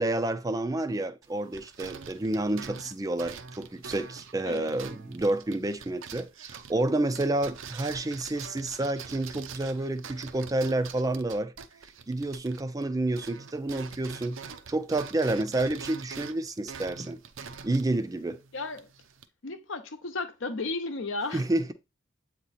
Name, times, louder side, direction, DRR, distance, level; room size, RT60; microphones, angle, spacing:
voice 1, 0.0-11.5 12.1-14.4 14.7-17.2 17.6-18.4 21.3-21.7, right 2 dB, 15° right, 0.4 m, -29 dB
sound 1, 1.2-12.9 13.1-19.3, right 6 dB, 75° right, 0.6 m, -45 dB
voice 2, 18.5-18.9 19.4-21.4, left 3 dB, 70° left, 0.8 m, -34 dB
7.9 x 2.9 x 4.1 m
head